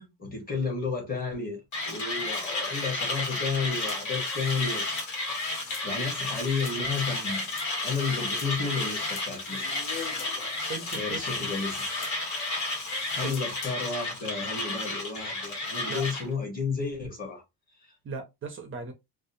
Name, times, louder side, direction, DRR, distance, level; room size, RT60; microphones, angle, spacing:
voice 1, 0.2-4.8 5.3-7.4 7.8-9.7 10.9-11.8 13.1-17.4 17.8-17.9, left 4 dB, 20° left, 0.9 m, -32 dB
Mechanisms, 1.7-16.3, left 2 dB, 45° left, 1.3 m, -32 dB
sound 1, 3.9-13.9, left 7 dB, 90° left, 0.8 m, -45 dB
voice 2, 10.7-11.2 13.2-13.4 15.8-16.3 18.0-18.9, right 4 dB, 30° right, 0.4 m, -38 dB
2.6 x 2.0 x 2.4 m
cardioid pair, 170°, 41 cm